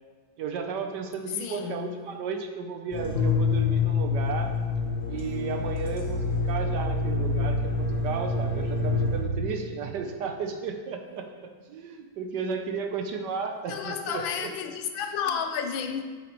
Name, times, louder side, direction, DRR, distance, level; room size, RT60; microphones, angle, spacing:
voice 1, 0.4-4.5 5.1-14.5, right 5 dB, 70° right, 1.2 m, -34 dB
voice 2, 1.4-1.9 13.7-16.0, left 7 dB, 80° left, 1.4 m, -31 dB
sound 1, 2.9-9.2, left 3 dB, 45° left, 1.3 m, -27 dB
9.0 x 8.2 x 3.0 m
omnidirectional pair, 2.2 m